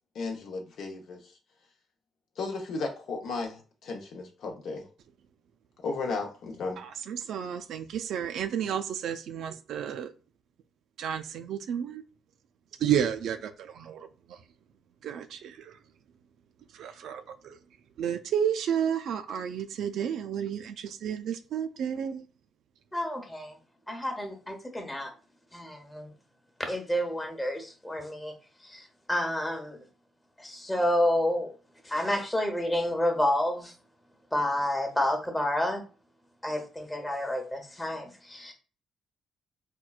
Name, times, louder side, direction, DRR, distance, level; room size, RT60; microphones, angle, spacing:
voice 1, 0.1-1.3 2.4-4.9 5.8-6.8, left 3 dB, 70° left, 0.8 m, -34 dB
voice 2, 6.8-10.1 11.0-12.0 12.8-14.4 15.0-15.8 16.7-17.6 18.0-22.3, right 8 dB, 75° right, 0.3 m, -32 dB
voice 3, 22.9-23.6 23.9-25.1 25.5-26.1 26.6-28.3 28.6-29.8 30.4-31.5 31.8-33.7 34.3-35.8 36.4-38.5, left 1 dB, 10° left, 0.9 m, -29 dB
4.4 x 2.2 x 2.3 m
cardioid pair, 90°, 0 cm